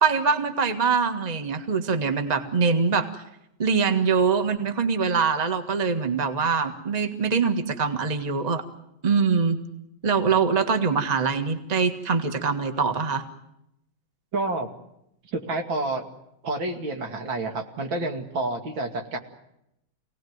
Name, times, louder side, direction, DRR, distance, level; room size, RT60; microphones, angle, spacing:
voice 1, 0.0-3.1 3.6-8.6 9.0-9.6 10.0-13.2, right 5 dB, 20° right, 8 dB, 1.6 m, -23 dB
voice 2, 14.3-14.7 15.3-16.1 16.4-19.2, right 2 dB, 70° right, 5 dB, 3.1 m, -29 dB
27.0 x 18.5 x 9.5 m, 0.83 s
omnidirectional pair, 2.2 m